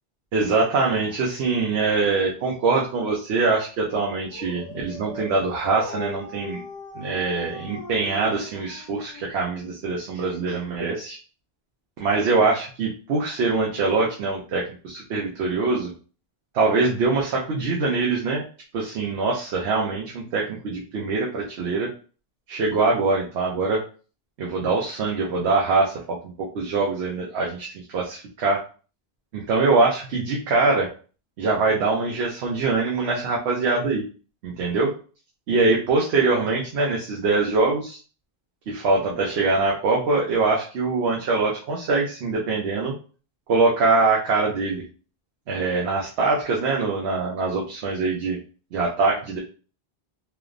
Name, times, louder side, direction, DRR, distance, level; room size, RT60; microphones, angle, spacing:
voice 1, 0.3-6.6 7.0-11.2 12.0-15.9 16.5-18.4 18.7-21.9 22.5-23.8 24.4-28.6 29.3-30.9 31.4-34.0 34.4-34.9 35.5-38.0 38.7-42.9 43.5-44.8 45.5-48.4 48.7-49.4, right 3 dB, 80° right, -3 dB, 0.9 m, -23 dB
Dog, 4.0-9.7, left 2 dB, 90° left, 1.0 m, -39 dB
3.1 x 2.0 x 2.4 m, 0.38 s
omnidirectional pair, 1.1 m